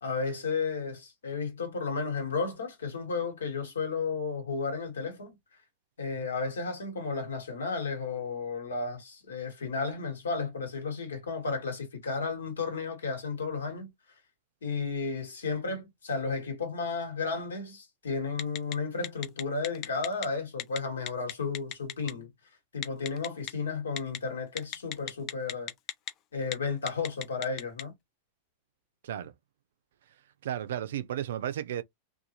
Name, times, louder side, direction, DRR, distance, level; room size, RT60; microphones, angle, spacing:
voice 1, 0.0-5.4 6.0-13.9 14.6-22.3 22.7-25.7 26.3-27.9, left 4 dB, 80° left, 1.3 m, -33 dB
Telephone, 18.4-18.7 19.0-20.3 20.6-20.8 21.1-22.1 22.8-23.5 24.0-24.2 24.6-26.1 26.4-26.5 26.9-27.8, left 11 dB, 40° left, 0.4 m, -34 dB
voice 2, 30.4-31.8, right 11 dB, 70° right, 0.4 m, -33 dB
2.7 x 2.3 x 2.8 m
hypercardioid pair, 95°, 0 cm